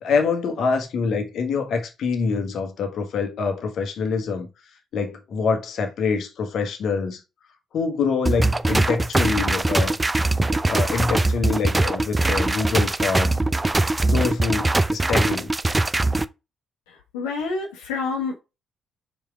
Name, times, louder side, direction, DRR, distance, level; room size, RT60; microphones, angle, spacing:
voice 1, 0.0-4.5 4.9-7.2 7.7-10.0 10.5-13.4 14.0-15.5, left 5 dB, 60° left, 1.3 m, -25 dB
sound 1, 8.2-16.2, right 2 dB, 20° right, 0.5 m, -21 dB
voice 2, 16.9-18.4, left 4 dB, 80° left, 1.2 m, -28 dB
5.0 x 4.5 x 4.6 m
hypercardioid pair, 45°, 0 cm